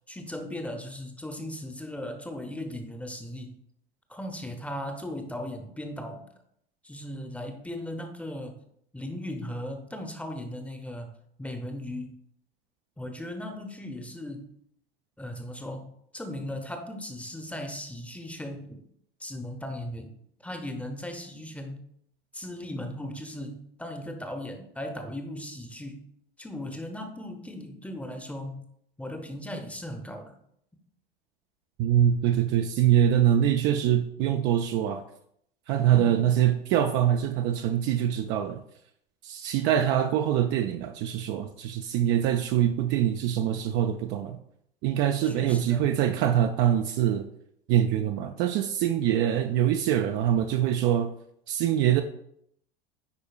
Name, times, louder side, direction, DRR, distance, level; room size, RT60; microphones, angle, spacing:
voice 1, 0.1-3.6 4.1-6.2 6.8-8.6 8.9-12.2 13.0-14.5 15.2-18.8 19.2-20.1 20.4-21.8 22.3-26.1 26.4-28.6 29.0-30.4 35.9-36.3 45.2-45.8, left 1 dB, 5° left, 5 dB, 0.8 m, -37 dB
voice 2, 31.8-35.0 35.7-38.6 39.2-44.4 44.8-47.3 47.7-51.1 51.5-52.0, right 10 dB, 40° right, 6 dB, 0.4 m, -24 dB
9.5 x 4.4 x 2.4 m, 0.73 s
figure-of-eight pair, 75°, 30 cm